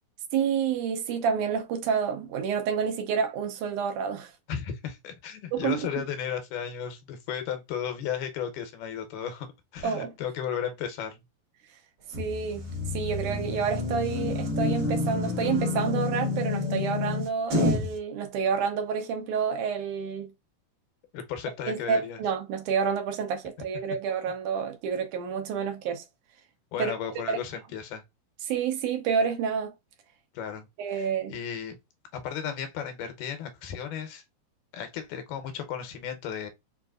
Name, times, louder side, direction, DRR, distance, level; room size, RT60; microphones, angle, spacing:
voice 1, 0.3-4.3 5.5-5.8 9.8-10.1 12.2-12.7 12.9-20.3 21.7-26.0 26.8-26.9 27.3-27.4 28.5-29.7 30.8-31.4, right 6 dB, 75° right, 2.3 m, -29 dB
voice 2, 4.5-11.2 21.1-22.2 26.7-28.0 30.3-31.8 32.1-34.2 34.7-36.5, left 8 dB, 90° left, 2.4 m, -35 dB
sound 1, 12.1-18.0, left 3 dB, 50° right, 2.2 m, -29 dB
5.5 x 2.6 x 2.4 m
omnidirectional pair, 3.7 m